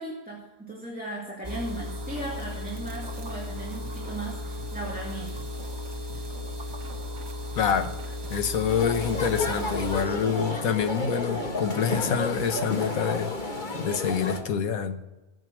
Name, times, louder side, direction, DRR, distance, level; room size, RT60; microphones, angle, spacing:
voice 1, 0.0-5.5, right 2 dB, 5° right, -4 dB, 2.4 m, -37 dB
sound 1, 1.4-10.1, left 1 dB, 20° right, 0.8 m, -35 dB
sound 2, 1.9-11.2, right 4 dB, 55° right, 1.5 m, -47 dB
voice 2, 7.6-7.9 8.3-13.3 13.7-15.0, left 7 dB, 75° left, 8 dB, 1.4 m, -26 dB
sound 3, 8.7-14.4, left 2 dB, 35° left, 1.5 m, -31 dB
16.5 x 9.5 x 6.2 m, 1.1 s
omnidirectional pair, 1.5 m